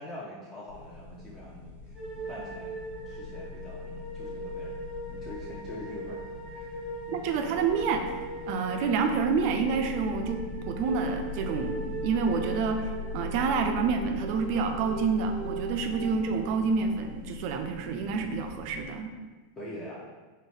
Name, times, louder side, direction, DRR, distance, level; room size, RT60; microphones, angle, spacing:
voice 1, 0.0-2.7 3.1-4.7 5.1-6.8 16.1-16.3 19.6-20.1, left 1 dB, 25° left, -6 dB, 0.6 m, -44 dB
sound 1, 0.7-18.8, left 4 dB, 80° left, 0.6 m, -41 dB
sound 2, 2.0-17.1, right 2 dB, ahead, 1.0 m, -40 dB
voice 2, 7.1-8.0 8.5-11.8 12.0-19.1, right 5 dB, 50° right, 5 dB, 0.3 m, -28 dB
3.7 x 2.1 x 3.1 m, 1.3 s
figure-of-eight pair, 85°, 0 cm